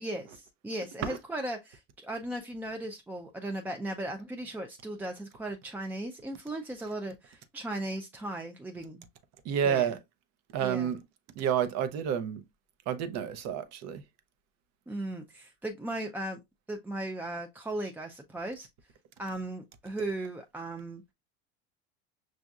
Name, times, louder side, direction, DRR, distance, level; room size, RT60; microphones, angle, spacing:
voice 1, 0.0-9.1 9.6-9.9 10.6-10.9 14.9-16.4 16.7-18.9 19.2-21.0, right 1 dB, 5° right, 0.3 m, -37 dB
voice 2, 9.4-10.0 10.5-11.0 11.4-12.4 12.9-14.0, right 8 dB, 60° right, 0.7 m, -29 dB
6.1 x 2.6 x 2.3 m
supercardioid pair, 120°, 31 cm